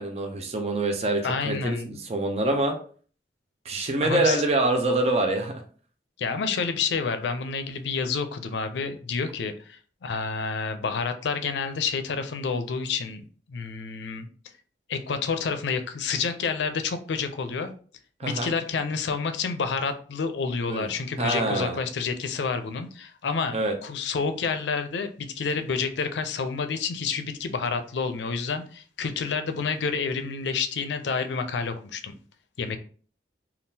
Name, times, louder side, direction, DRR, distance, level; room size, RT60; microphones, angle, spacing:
voice 1, 0.0-2.8 3.7-5.6 18.2-18.5 20.7-20.9 21.2-21.8 23.5-23.7, right 2 dB, 35° right, 4 dB, 0.4 m, -25 dB
voice 2, 1.2-2.0 4.0-4.4 6.2-13.2 13.5-14.3 14.9-17.7 18.2-32.1 32.6-32.8, left 5 dB, 75° left, 8 dB, 0.4 m, -29 dB
3.6 x 2.3 x 2.7 m, 0.43 s
head